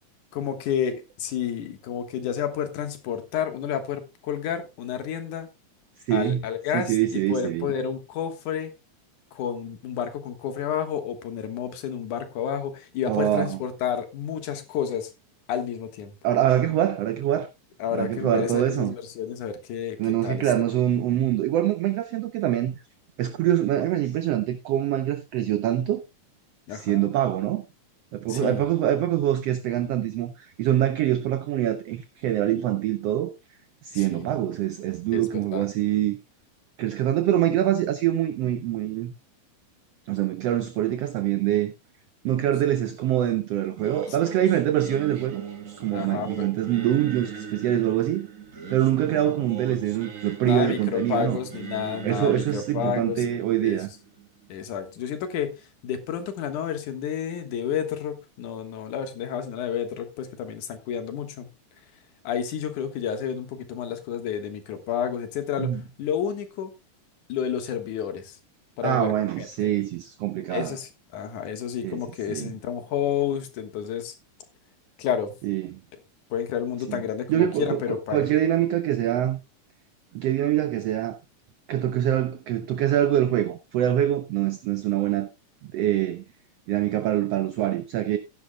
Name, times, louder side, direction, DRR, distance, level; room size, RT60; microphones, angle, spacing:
voice 1, 0.3-5.5 6.1-8.7 9.3-15.1 15.5-16.1 17.8-20.0 20.2-20.5 26.7-27.1 28.3-28.7 33.9-34.3 35.1-35.3 35.5-35.6 45.9-46.3 50.4-53.2 53.6-53.8 54.5-55.6 55.8-61.5 62.2-65.7 66.0-66.7 67.3-68.4 68.8-69.7 70.5-74.1 75.0-75.3 76.3-78.3, left 8 dB, 75° left, 2.8 m, -30 dB
voice 2, 6.1-6.4 6.7-7.7 13.1-13.6 16.2-17.5 17.9-18.9 20.0-22.8 23.2-26.0 26.7-27.6 28.1-33.3 33.8-36.2 36.8-39.1 40.1-41.7 42.2-45.4 45.8-48.3 48.7-51.4 52.0-53.9 65.6-65.8 68.8-70.8 71.8-72.0 72.3-72.5 75.4-75.8 76.9-77.0 77.3-79.4 80.1-81.2 81.7-85.3 85.7-86.2 86.7-88.2, right 12 dB, 80° right, 1.4 m, -24 dB
Singing, 43.8-54.9, right 7 dB, 45° right, 1.1 m, -39 dB
15.5 x 10.5 x 2.2 m
omnidirectional pair, 3.7 m